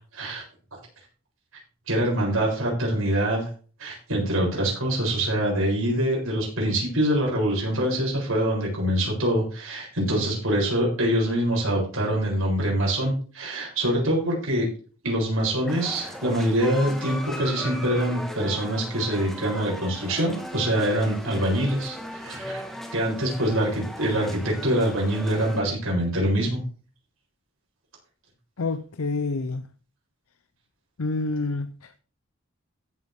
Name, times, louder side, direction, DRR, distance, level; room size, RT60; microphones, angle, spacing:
voice 1, 0.1-0.4 1.9-3.5 3.8-14.7 15.0-22.6 22.9-26.6, right 1 dB, 85° right, 7.5 m, -24 dB
sound 1, 15.7-25.6, left 1 dB, ahead, 1.5 m, -38 dB
voice 2, 28.6-29.6 31.0-31.9, left 3 dB, 90° left, 0.7 m, -28 dB
16.0 x 8.1 x 3.6 m
head